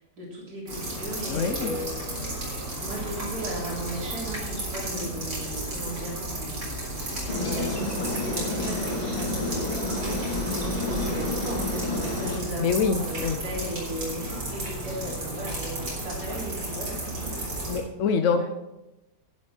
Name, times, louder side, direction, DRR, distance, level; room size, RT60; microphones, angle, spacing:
voice 1, 0.0-2.5 2.8-6.2 7.3-9.8 10.1-17.4 18.2-18.4, equal, 65° right, -5 dB, 4.4 m, -36 dB
sound 1, 0.7-17.8, right 1 dB, 85° right, 4.5 m, -33 dB
voice 2, 1.3-1.8 12.6-13.4 17.7-18.4, left 6 dB, 60° left, 6 dB, 0.9 m, -25 dB
Aircraft, 7.3-12.4, left 2 dB, 25° left, 2.2 m, -30 dB
11.5 x 10.0 x 4.5 m, 0.96 s
omnidirectional pair, 1.8 m